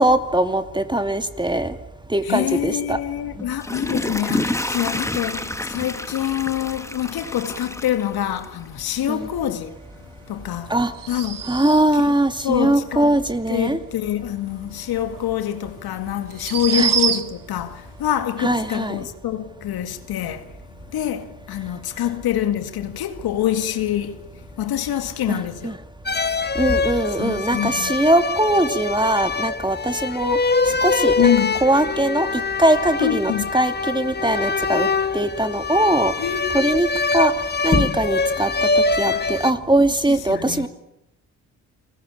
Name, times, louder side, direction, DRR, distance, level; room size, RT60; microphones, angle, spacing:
voice 1, 0.0-1.7 2.1-3.0 9.1-9.3 10.7-10.9 11.5-13.8 16.7-16.9 18.4-18.9 25.3-25.8 26.6-30.4 30.8-31.3 31.6-34.9 35.1-36.1 36.5-36.9 37.1-37.3 37.6-38.7 39.0-40.7, right 1 dB, 10° right, 2.6 m, -21 dB
voice 2, 2.2-9.7 10.3-10.8 11.1-11.4 11.9-12.1 12.4-13.2 13.5-20.5 20.9-24.2 24.6-25.8 27.1-27.9 31.2-31.6 33.0-33.5 36.2-36.7 39.1-39.3 39.9-40.7, left 11 dB, 70° left, 2.2 m, -25 dB
Water / Toilet flush, 3.4-8.7 9.1-9.2, left 1 dB, 5° left, 1.9 m, -29 dB
sound 1, 10.9-12.0 15.1-15.2 16.3-17.6, right 8 dB, 55° right, 2.0 m, -25 dB
sound 2, 26.1-39.5, left 4 dB, 25° left, 1.4 m, -23 dB
28.5 x 20.5 x 8.6 m
hypercardioid pair, 50°, 38 cm